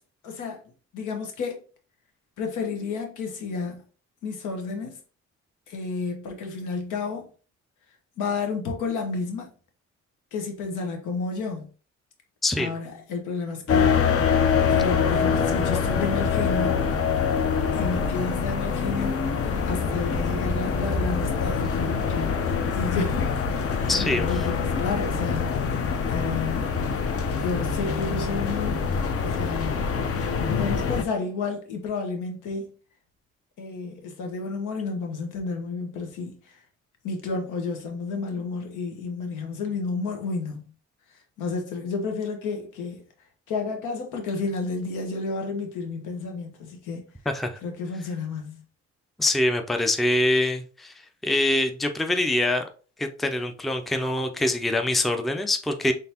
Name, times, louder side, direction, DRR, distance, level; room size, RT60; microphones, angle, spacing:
voice 1, 0.2-0.6 0.9-1.6 2.4-3.8 4.2-5.0 5.7-7.3 8.2-9.5 10.3-11.7 12.6-13.9 14.7-16.8 17.7-19.2 19.4-23.3 23.7-25.6 26.1-26.8 27.4-28.9 29.2-29.9 30.6-32.7 33.6-36.6 37.0-40.7 41.4-43.0 43.5-47.0 47.6-48.6, left 4 dB, 85° left, 1.2 m, -31 dB
sound 1, 13.7-31.0, left 6 dB, 50° left, 0.7 m, -25 dB
voice 2, 23.9-24.4 47.3-47.6 49.2-52.7 53.0-55.9, left 1 dB, ahead, 0.4 m, -24 dB
3.9 x 3.4 x 2.9 m
cardioid pair, 90°, 30 cm